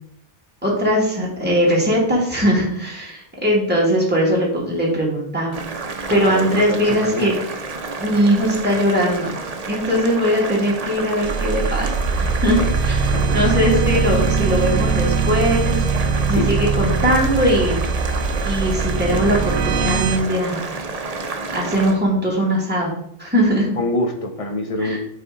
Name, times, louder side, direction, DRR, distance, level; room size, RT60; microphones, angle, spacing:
voice 1, 0.6-5.6 6.1-7.3 8.0-9.3 9.7-15.8 16.3-17.8 18.5-20.6 21.5-22.9 23.2-23.7 24.8-25.0, equal, 10° right, -4 dB, 1.7 m, -20 dB
Boiling, 5.5-21.9, right 3 dB, 40° right, 0.8 m, -30 dB
voice 2, 6.1-7.3 12.6-12.7 13.1-13.4 16.3-16.5 23.7-25.0, left 1 dB, 35° left, 5 dB, 0.9 m, -25 dB
sound 1, 11.2-20.2, right 5 dB, 70° right, 0.8 m, -21 dB
6.9 x 4.3 x 3.7 m, 0.71 s
omnidirectional pair, 1.0 m